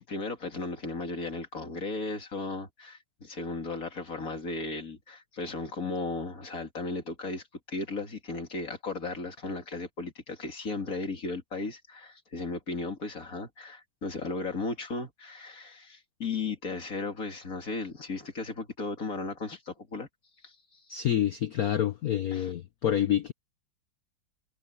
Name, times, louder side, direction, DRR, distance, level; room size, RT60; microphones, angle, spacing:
voice 1, 0.0-20.1 20.4-20.8 22.3-22.5, left 3 dB, 40° left, 3.0 m, -36 dB
voice 2, 20.9-23.3, left 10 dB, 65° left, 0.9 m, -27 dB
omnidirectional pair, 2.4 m